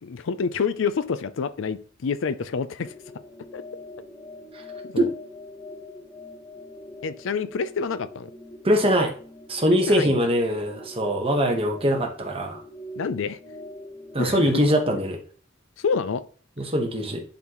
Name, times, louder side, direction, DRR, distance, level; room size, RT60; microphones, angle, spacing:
voice 1, 0.0-2.9 3.5-3.6 4.8-5.1 7.0-8.3 9.7-10.2 13.0-13.4 14.2-14.6 15.8-16.2 16.6-16.7, left 5 dB, 65° left, 0.4 m, -28 dB
sound 1, 2.8-14.7, left 1 dB, 15° left, 1.3 m, -43 dB
voice 2, 8.6-9.1 9.5-12.6 14.1-15.2 16.6-17.2, equal, 30° right, 1.2 m, -22 dB
10.5 x 4.0 x 3.0 m
head